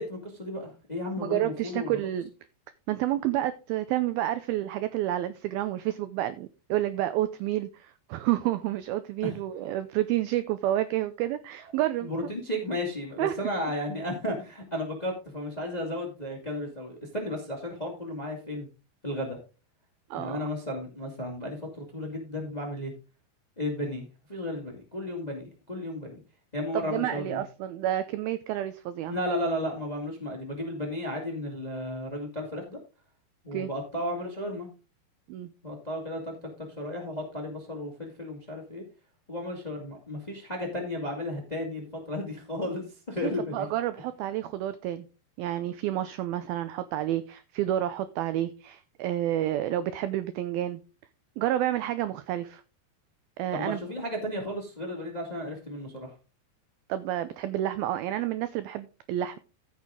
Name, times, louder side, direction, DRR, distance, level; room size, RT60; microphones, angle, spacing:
voice 1, 0.0-2.0 9.2-9.4 12.0-18.7 19.0-19.4 20.1-22.9 23.6-26.2 26.5-27.4 29.1-32.8 33.4-34.7 35.6-38.8 39.3-43.7 53.5-56.1, left 1 dB, 15° left, 0 dB, 1.3 m, -34 dB
voice 2, 1.2-2.3 2.9-12.1 13.2-13.4 20.1-20.5 26.7-29.2 33.5-33.7 35.3-35.5 43.2-45.1 45.4-50.8 51.4-52.6 53.4-53.8 56.9-59.4, right 13 dB, 85° right, 12 dB, 2.1 m, -29 dB
14.5 x 6.4 x 3.7 m, 0.32 s
omnidirectional pair, 5.0 m